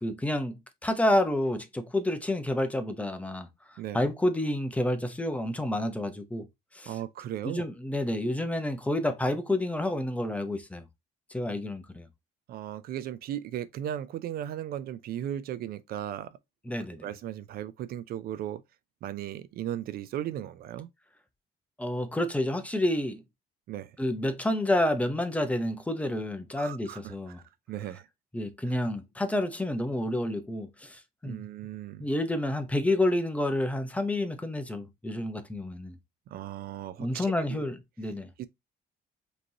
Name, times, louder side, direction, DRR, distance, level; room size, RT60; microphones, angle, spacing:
voice 1, 0.0-3.5 3.9-6.5 6.7-7.0 7.4-10.8 11.3-12.1 16.6-17.1 21.8-23.2 24.0-27.4 28.3-31.5 32.0-36.0 37.0-38.3, left 1 dB, 10° left, 0.8 m, -29 dB
voice 2, 6.9-7.7 12.5-16.4 17.0-18.6 19.0-20.9 23.7-23.9 26.6-27.4 27.7-28.1 28.7-28.8 31.2-32.1 36.3-37.6 38.4-38.5, right 11 dB, 65° right, 0.4 m, -36 dB
5.0 x 3.1 x 2.8 m
cardioid pair, 110°, 17 cm